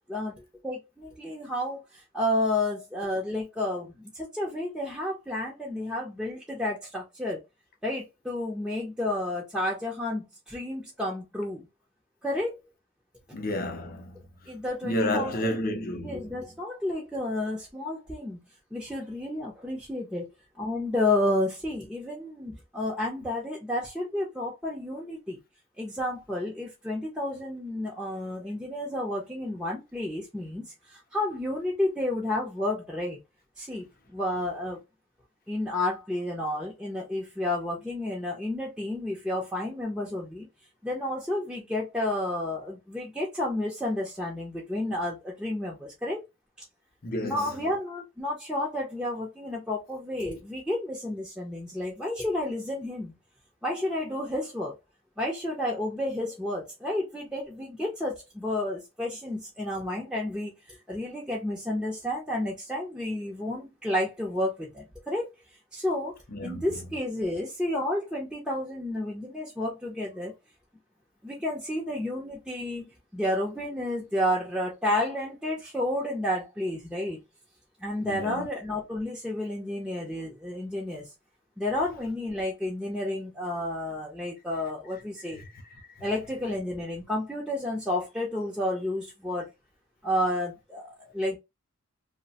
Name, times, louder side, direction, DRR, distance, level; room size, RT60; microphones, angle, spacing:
voice 1, 0.1-7.4 7.8-11.7 12.2-12.6 14.5-15.6 16.0-18.4 18.7-20.2 20.6-25.4 25.8-33.2 33.6-34.8 35.5-40.5 40.8-46.2 47.2-53.1 53.6-54.7 55.2-65.3 65.7-66.1 66.4-70.3 71.2-77.2 77.8-81.1 81.6-85.4 86.0-89.5 90.0-91.4, left 1 dB, ahead, 0.5 m, -31 dB
voice 2, 13.3-14.2 14.8-16.4 47.0-47.5 66.3-66.6 78.0-78.5 85.4-85.5, left 1 dB, 40° left, 0.6 m, -31 dB
2.8 x 2.1 x 2.7 m
head